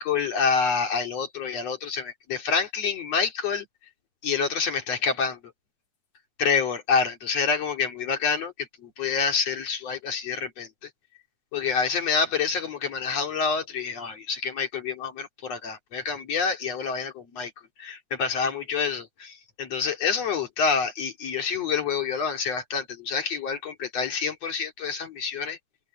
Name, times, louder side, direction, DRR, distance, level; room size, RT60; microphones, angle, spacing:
voice 1, 0.0-3.7 4.2-5.4 6.4-10.9 11.5-17.5 17.8-25.6, left 5 dB, 45° left, 2.6 m, -27 dB
open air
omnidirectional pair, 5.7 m